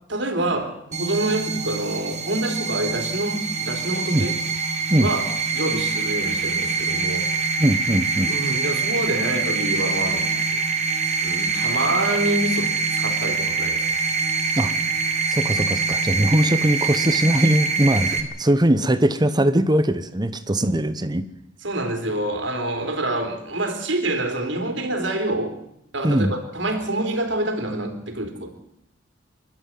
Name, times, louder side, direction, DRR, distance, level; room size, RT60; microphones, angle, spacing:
voice 1, 0.1-4.4 5.0-7.3 8.2-10.7 11.2-14.0 14.6-14.8 18.1-18.2 21.6-25.5 25.9-28.7, right 1 dB, 70° right, 6 dB, 3.6 m, -27 dB
sound 1, 0.9-18.2, right 4 dB, 40° right, 2.6 m, -24 dB
voice 2, 7.6-8.3 14.5-14.7 15.3-21.3 26.0-26.3, right 1 dB, 20° right, 12 dB, 1.0 m, -20 dB
27.5 x 12.0 x 9.3 m, 0.81 s
head